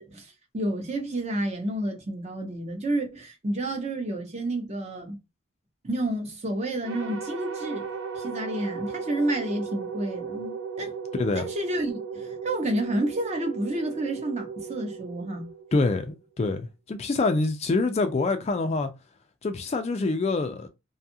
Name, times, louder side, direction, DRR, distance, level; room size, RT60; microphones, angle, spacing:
voice 1, 0.0-5.2 5.8-7.8 8.1-10.9 11.3-15.5, right 1 dB, 35° right, 0.7 m, -30 dB
sound 1, 6.8-16.1, right 6 dB, 85° right, 0.6 m, -36 dB
voice 2, 11.1-11.5 15.7-18.9 19.4-20.7, left 3 dB, 30° left, 0.3 m, -26 dB
2.7 x 2.3 x 2.6 m
head